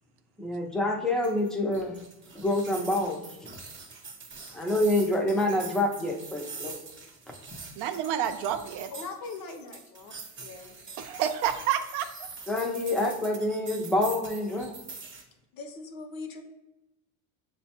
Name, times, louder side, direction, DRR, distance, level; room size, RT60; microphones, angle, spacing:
voice 1, 0.4-1.9 2.4-3.2 4.5-6.8 12.5-14.7, left 1 dB, ahead, 0 dB, 0.5 m, -27 dB
sound 1, 1.2-15.2, right 4 dB, 25° right, 0.8 m, -44 dB
voice 2, 7.8-8.9 11.0-12.3, right 10 dB, 60° right, 7 dB, 0.6 m, -29 dB
voice 3, 8.9-10.1 10.4-10.7 15.5-16.4, left 4 dB, 50° left, 6 dB, 0.8 m, -40 dB
6.6 x 2.2 x 2.8 m, 0.93 s
supercardioid pair, 100°, 44 cm